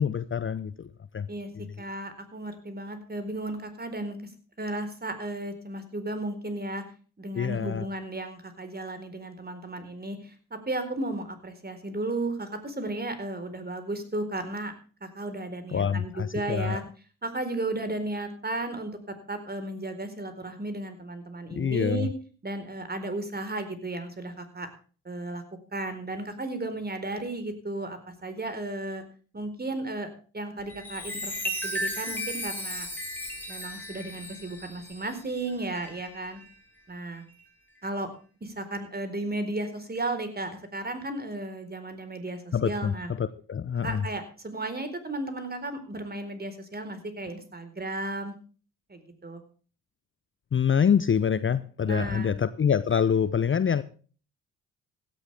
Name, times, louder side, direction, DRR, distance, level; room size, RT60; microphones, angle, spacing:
voice 1, 0.0-1.3 1.6-1.7 7.3-7.9 15.7-16.8 21.5-22.1 42.5-44.1 50.5-53.8, left 7 dB, 30° left, 15 dB, 0.8 m, -26 dB
voice 2, 1.8-4.2 4.6-6.8 7.2-10.3 10.7-14.7 15.0-16.8 17.2-18.9 19.3-22.1 22.4-24.7 25.0-25.4 25.7-29.0 29.3-30.1 30.3-32.9 33.5-36.4 36.9-37.2 37.8-38.1 38.4-43.1 43.8-48.3 48.9-49.4 51.8-52.3, right 2 dB, 25° right, 9 dB, 4.3 m, -34 dB
Chime, 30.6-36.6 37.1-37.4, equal, 5° left, 5.4 m, -36 dB
16.5 x 13.0 x 3.5 m, 0.40 s
hypercardioid pair, 50°, 38 cm